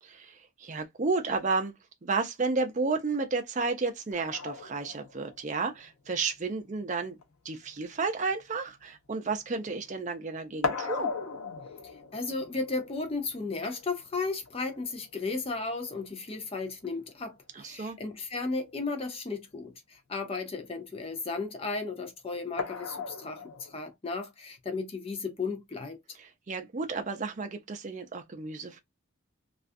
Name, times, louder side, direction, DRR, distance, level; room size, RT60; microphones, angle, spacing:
voice 1, 0.0-1.7 2.0-7.2 7.4-11.1 17.5-18.0 26.1-28.8, right 4 dB, 35° right, 0.5 m, -32 dB
sound 1, 4.1-9.8 10.1-17.1 18.5-18.6 19.0-19.1 22.6-23.8, left 4 dB, 90° left, 0.6 m, -39 dB
voice 2, 12.1-26.0, left 3 dB, 25° left, 0.4 m, -34 dB
2.4 x 2.3 x 2.5 m
head